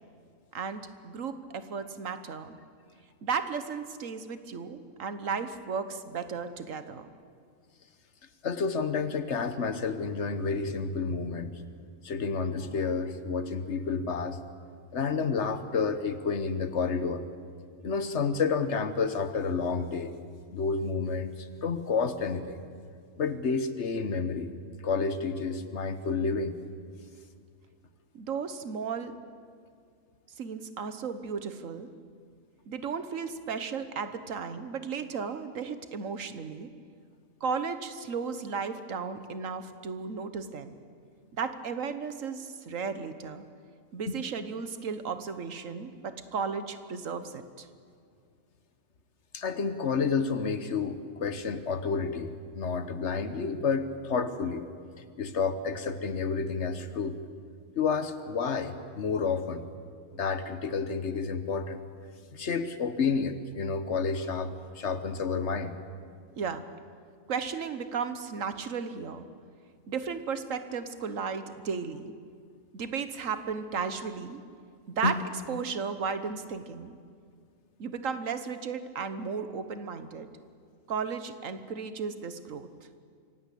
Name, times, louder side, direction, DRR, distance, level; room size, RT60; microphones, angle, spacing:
voice 1, 0.5-2.5 3.2-7.1 28.1-29.2 30.4-31.9 32.7-36.7 37.4-40.8 41.3-43.5 43.9-47.7 66.4-66.6 67.3-69.3 69.9-72.1 72.7-74.4 74.9-75.2 75.5-76.9 77.8-80.3 80.9-82.7, right 5 dB, 85° right, 11 dB, 1.6 m, -34 dB
voice 2, 8.4-11.5 12.0-14.4 14.9-17.2 17.8-20.1 20.5-22.6 23.2-24.5 24.8-26.6 44.1-44.2 49.3-54.6 55.2-57.2 57.8-59.6 60.1-61.8 62.3-65.7 75.0-75.2, left 5 dB, 65° left, 11 dB, 1.4 m, -30 dB
25.5 x 17.0 x 8.5 m, 2.2 s
omnidirectional pair, 1.3 m